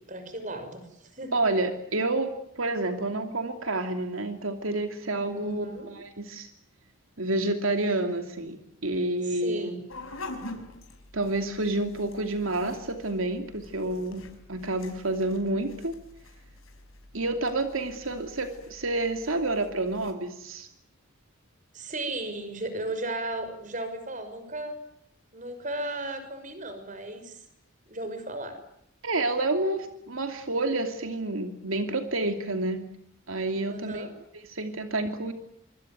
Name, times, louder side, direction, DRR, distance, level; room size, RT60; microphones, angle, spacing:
voice 1, 0.1-1.4 5.3-5.9 9.2-9.8 21.7-24.8 25.3-27.4 27.9-28.6 33.6-34.1, right 2 dB, 40° right, 9 dB, 6.1 m, -35 dB
voice 2, 1.3-6.5 7.2-8.6 8.8-9.8 11.1-15.9 17.1-20.7 29.0-32.8 33.3-34.1 34.3-35.3, right 2 dB, 85° right, 6 dB, 2.8 m, -29 dB
sound 1, 9.9-20.1, left 2 dB, 85° left, 5.6 m, -46 dB
25.5 x 25.0 x 9.3 m, 0.72 s
head